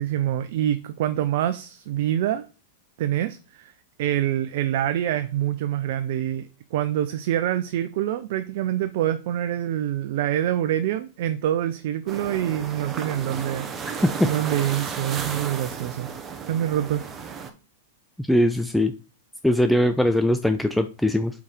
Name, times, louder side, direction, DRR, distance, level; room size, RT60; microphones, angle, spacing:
voice 1, 0.0-2.4 3.0-3.7 4.0-16.1 16.5-17.0, right 11 dB, 60° right, 0.5 m, -26 dB
sound 1, 12.1-17.5, right 6 dB, 25° right, 1.2 m, -34 dB
voice 2, 18.3-18.9 19.4-21.3, left 1 dB, ahead, 0.5 m, -21 dB
5.5 x 4.8 x 4.5 m
hypercardioid pair, 105°, 0 cm